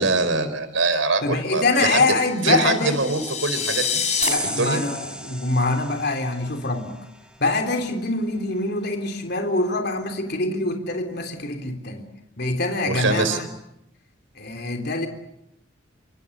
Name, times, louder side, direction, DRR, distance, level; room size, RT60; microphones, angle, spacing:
voice 1, 0.0-2.0 2.4-4.0 4.4-4.8 12.9-13.4, right 3 dB, 85° right, 11 dB, 4.6 m, -23 dB
voice 2, 1.2-3.0 4.2-7.0 7.4-12.1 12.4-13.4 14.4-15.1, left 2 dB, 55° left, 4 dB, 3.5 m, -24 dB
sound 1, 2.4-4.3, left 7 dB, 35° left, 6.8 m, -27 dB
sound 2, 4.2-7.6, right 1 dB, 5° right, 2.7 m, -33 dB
28.5 x 26.0 x 6.8 m, 0.81 s
head